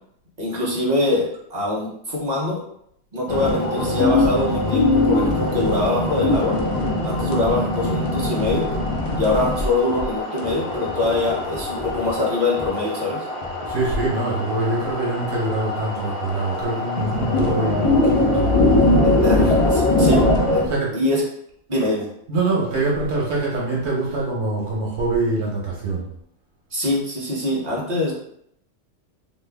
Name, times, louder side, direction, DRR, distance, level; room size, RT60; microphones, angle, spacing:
voice 1, 0.4-2.6 3.1-6.6 7.0-8.7 9.1-13.3 19.0-20.7 20.9-21.2 21.7-22.1 26.7-28.1, left 2 dB, 40° right, -4 dB, 1.0 m, -24 dB
sound 1, 3.3-20.6, left 2 dB, 45° left, 0.4 m, -22 dB
voice 2, 13.7-18.5 19.3-19.5 20.7-20.9 22.3-26.0, right 2 dB, 90° right, -4 dB, 1.3 m, -24 dB
3.0 x 2.3 x 3.4 m, 0.71 s
omnidirectional pair, 1.2 m